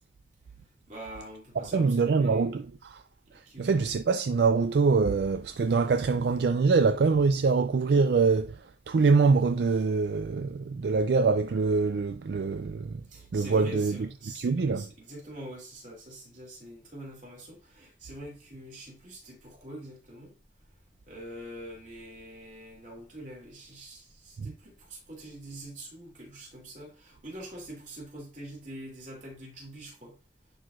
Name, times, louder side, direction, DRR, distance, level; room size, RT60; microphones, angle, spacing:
voice 1, 0.9-2.5 3.3-3.8 13.1-20.3 21.1-30.2, right 1 dB, 45° right, 2.9 m, -44 dB
voice 2, 1.6-3.0 3.6-13.0 13.3-13.9 14.4-14.9 24.4-24.5, right 4 dB, 70° right, 0.4 m, -24 dB
10.0 x 4.7 x 2.5 m
head